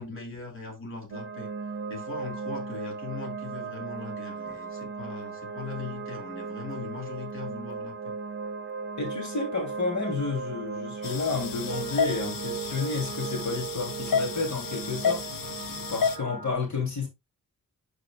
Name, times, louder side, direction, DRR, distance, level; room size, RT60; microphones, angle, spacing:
voice 1, 0.0-1.5 1.9-8.1, left 4 dB, 40° left, 2.9 m, -40 dB
sound 1, 1.1-16.5, right 5 dB, 35° right, 1.2 m, -37 dB
voice 2, 9.0-15.5 15.9-17.1, left 4 dB, 60° left, 3.0 m, -31 dB
sound 2, 11.0-16.2, left 6 dB, 80° left, 0.9 m, -31 dB
11.0 x 4.9 x 2.4 m
wide cardioid pair, 105°, 32 cm